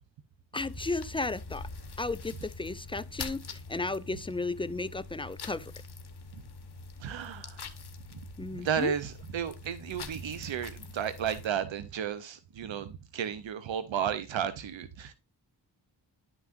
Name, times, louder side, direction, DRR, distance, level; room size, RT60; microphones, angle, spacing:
voice 1, 0.5-1.7 2.0-3.4 3.7-5.7 8.4-8.9, left 3 dB, 15° left, 0.3 m, -34 dB
sound 1, 0.6-11.5, left 4 dB, 60° left, 1.1 m, -44 dB
voice 2, 7.0-7.6 8.5-15.1, right 8 dB, 85° right, 0.7 m, -33 dB
11.0 x 5.9 x 2.4 m
cardioid pair, 60°, 44 cm